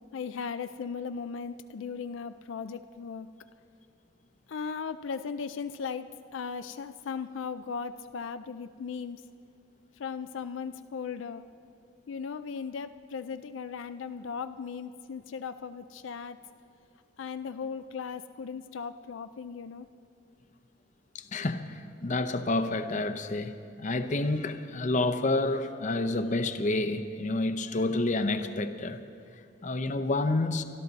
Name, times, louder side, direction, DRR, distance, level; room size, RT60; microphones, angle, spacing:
voice 1, 0.1-3.3 4.5-9.2 10.0-11.4 12.1-16.4 17.2-19.9, left 6 dB, 85° left, 11 dB, 0.4 m, -37 dB
voice 2, 21.1-29.0 29.6-30.6, left 2 dB, 40° left, 10 dB, 0.7 m, -29 dB
25.0 x 12.0 x 4.0 m, 2.5 s
head